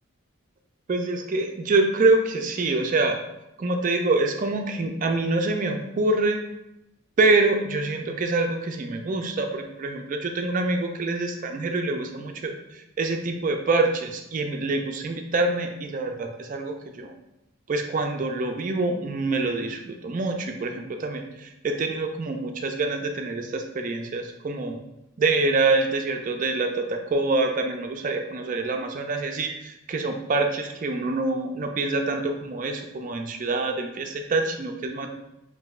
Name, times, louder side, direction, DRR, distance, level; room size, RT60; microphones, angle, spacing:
voice 1, 0.9-3.2 3.6-6.4 7.2-12.5 13.0-17.1 17.7-24.8 25.2-35.1, right 3 dB, 35° right, 4 dB, 0.3 m, -25 dB
5.7 x 2.7 x 2.4 m, 0.89 s
head